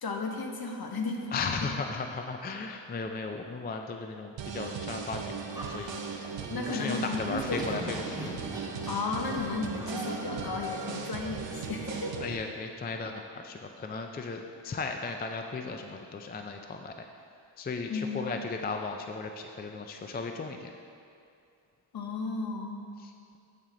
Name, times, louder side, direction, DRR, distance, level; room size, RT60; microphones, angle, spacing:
voice 1, 0.0-1.7 6.5-7.6 8.9-12.2 17.9-18.3 21.9-22.9, left 3 dB, 50° left, 2 dB, 1.0 m, -34 dB
voice 2, 1.3-6.3 6.7-8.3 12.2-16.9 17.6-20.7 23.0-23.4, left 4 dB, 25° left, 4 dB, 0.3 m, -36 dB
sound 1, 4.4-12.3, right 5 dB, 70° right, 0.9 m, -38 dB
Livestock farm animals working animals, 5.5-11.3, right 1 dB, 10° right, 1.2 m, -42 dB
8.9 x 8.3 x 3.8 m, 2.4 s
wide cardioid pair, 135°, 46 cm